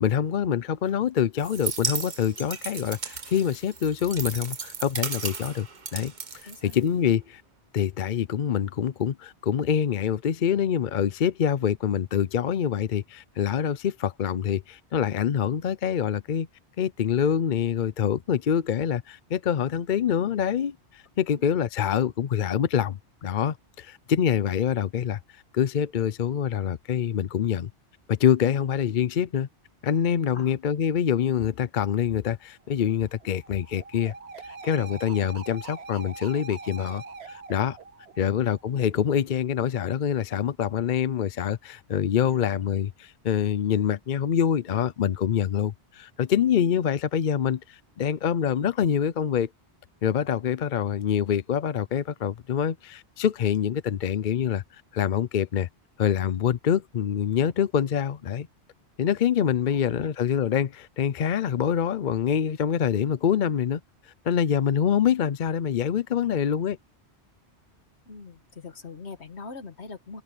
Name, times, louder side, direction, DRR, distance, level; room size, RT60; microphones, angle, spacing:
voice 1, 0.0-5.7 5.9-6.1 6.4-7.4 7.7-16.5 16.8-27.7 28.1-29.5 29.8-34.1 34.4-37.8 38.2-49.5 50.0-54.6 54.9-55.7 56.0-58.5 59.0-63.8 64.2-66.8, left 8 dB, 50° left, 0.7 m, -25 dB
sound 1, 1.4-7.1, right 5 dB, 45° right, 1.2 m, -34 dB
voice 2, 6.4-6.9 21.3-21.4 30.3-30.5 42.3-42.8 59.7-60.2 68.1-70.2, left 4 dB, 75° left, 1.9 m, -43 dB
sound 2, 32.7-39.0, right 4 dB, 70° right, 1.3 m, -43 dB
open air
omnidirectional pair, 1.1 m